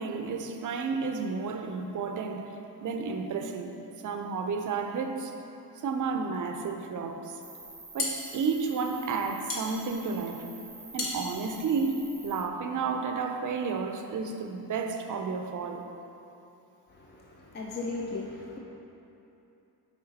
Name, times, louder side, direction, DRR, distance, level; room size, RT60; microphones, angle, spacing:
voice 1, 0.0-2.5 2.8-3.7 4.0-5.4 5.8-7.4 7.9-10.5 10.9-15.9, right 5 dB, 50° right, 5 dB, 0.6 m, -31 dB
Cricket, 7.4-12.4, right 2 dB, 10° right, 0.9 m, -48 dB
sound 1, 7.6-12.6, left 3 dB, 55° left, 1.3 m, -37 dB
voice 2, 16.9-18.6, left 3 dB, 25° left, -2 dB, 0.6 m, -37 dB
6.5 x 4.9 x 4.1 m, 2.9 s
cardioid pair, 90°, 41 cm